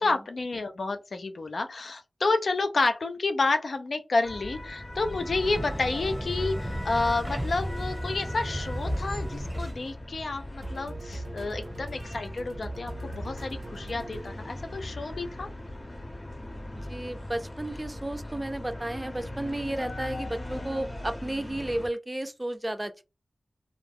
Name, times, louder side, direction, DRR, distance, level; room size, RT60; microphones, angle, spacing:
voice 1, 0.0-15.5, left 3 dB, 85° left, 0.4 m, -30 dB
sound 1, 4.2-21.9, left 1 dB, 40° left, 0.7 m, -40 dB
tram arrive, 4.9-9.9, equal, 5° right, 0.8 m, -34 dB
sound 2, 10.6-14.7, right 2 dB, 85° right, 0.4 m, -42 dB
voice 2, 16.7-23.0, right 1 dB, 20° right, 0.4 m, -33 dB
2.4 x 2.1 x 3.3 m
wide cardioid pair, 85°, 0 cm